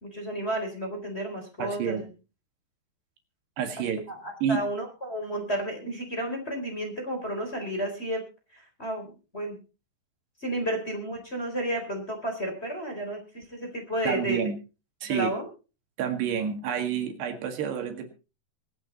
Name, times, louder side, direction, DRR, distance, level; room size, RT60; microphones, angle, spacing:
voice 1, 0.0-2.1 4.1-8.2 8.5-9.6 10.4-14.5 15.1-15.5, right 1 dB, 15° left, 2 dB, 3.7 m, -32 dB
voice 2, 1.6-2.0 3.6-4.0 4.4-4.6 14.1-14.6 15.0-15.3 16.0-18.1, right 7 dB, 75° right, 5 dB, 4.0 m, -29 dB
24.5 x 8.4 x 4.1 m, 0.33 s
omnidirectional pair, 4.9 m